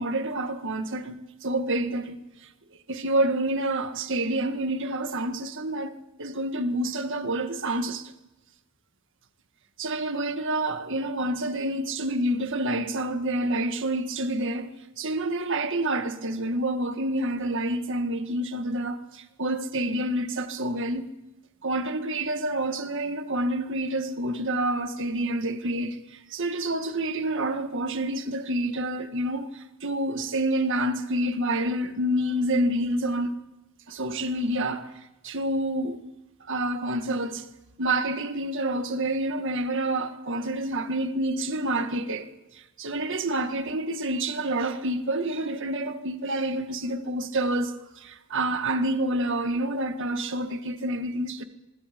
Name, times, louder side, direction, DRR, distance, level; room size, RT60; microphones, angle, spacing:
voice 1, 0.0-2.2 2.9-8.1 9.8-21.1 21.6-33.3 33.9-34.9 35.2-36.0 36.5-37.5 37.8-42.3 42.5-51.4, right 1 dB, 55° right, 1.8 m, -28 dB
24.0 x 21.5 x 5.3 m
head